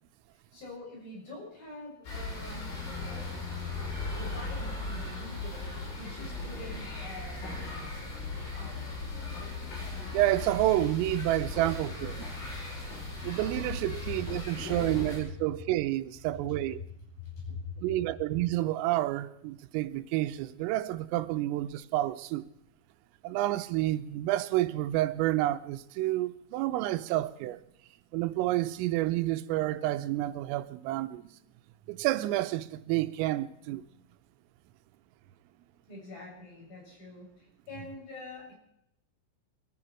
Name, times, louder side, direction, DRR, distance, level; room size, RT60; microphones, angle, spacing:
voice 1, 0.5-2.7 4.1-9.1 17.2-18.0 35.9-38.5, left 3 dB, 45° left, 8.8 m, -45 dB
sound 1, 2.0-15.2, left 3 dB, 65° left, 9.6 m, -37 dB
voice 2, 10.1-12.3 13.2-16.8 17.8-22.5 23.2-27.6 28.1-31.3 31.9-33.8, right 16 dB, 90° right, 3.5 m, -29 dB
22.0 x 14.5 x 4.5 m
omnidirectional pair, 5.8 m